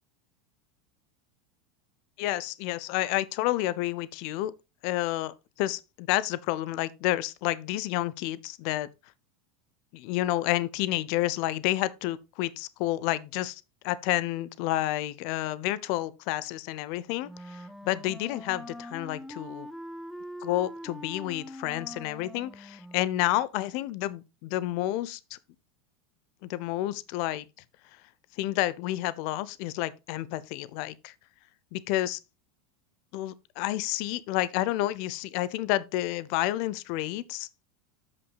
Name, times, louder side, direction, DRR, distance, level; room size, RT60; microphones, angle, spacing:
voice 1, 2.2-4.5 4.8-8.9 9.9-19.7 20.4-25.4 26.4-27.5 28.4-31.1 31.7-32.2 33.1-37.6, left 15 dB, 60° left, 0.6 m, -30 dB
Wind instrument woodwind instrument, 17.2-23.4, equal, ahead, 1.1 m, -43 dB
13.0 x 5.7 x 2.3 m
hypercardioid pair, 95°, 0 cm